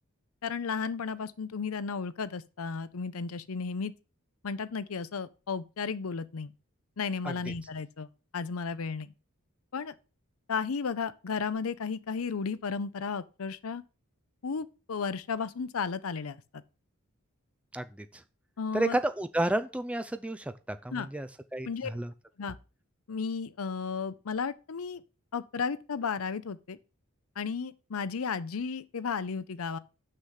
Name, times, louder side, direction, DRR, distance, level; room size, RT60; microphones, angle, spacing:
voice 1, 0.4-3.9 4.4-6.5 7.0-9.1 9.7-9.9 10.5-13.8 14.4-16.6 18.6-19.0 20.9-21.1 21.6-21.9 22.4-22.6 23.1-25.0 25.3-26.8 27.4-29.8, left 5 dB, 75° left, 0.6 m, -34 dB
voice 2, 17.7-18.2 18.7-22.1, right 1 dB, 5° right, 0.5 m, -32 dB
6.5 x 5.7 x 6.5 m
head